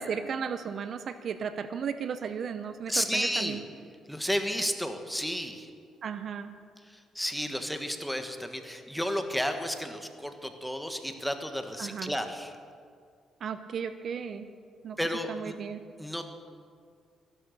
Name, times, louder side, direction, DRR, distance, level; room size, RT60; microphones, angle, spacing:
voice 1, 0.0-3.6 6.0-6.5 11.8-12.1 13.4-14.5 14.8-15.0 15.3-15.8, right 6 dB, 60° right, 11 dB, 0.7 m, -35 dB
voice 2, 2.9-3.6 4.1-5.7 7.1-12.5 15.0-15.5 16.0-16.2, equal, ahead, 6 dB, 1.4 m, -32 dB
14.5 x 11.5 x 6.5 m, 2.2 s
cardioid pair, 90°, 0 cm